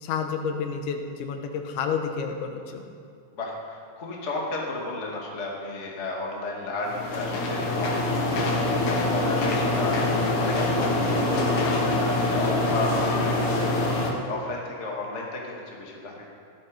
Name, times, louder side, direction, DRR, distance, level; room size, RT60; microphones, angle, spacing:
voice 1, 0.0-2.9, left 6 dB, 80° left, 5 dB, 3.3 m, -30 dB
voice 2, 3.3-16.2, left 2 dB, 30° left, -2 dB, 1.3 m, -33 dB
sound 1, 6.8-14.1, left 2 dB, 60° left, 2.2 m, -24 dB
15.5 x 13.0 x 5.3 m, 2.3 s
omnidirectional pair, 5.3 m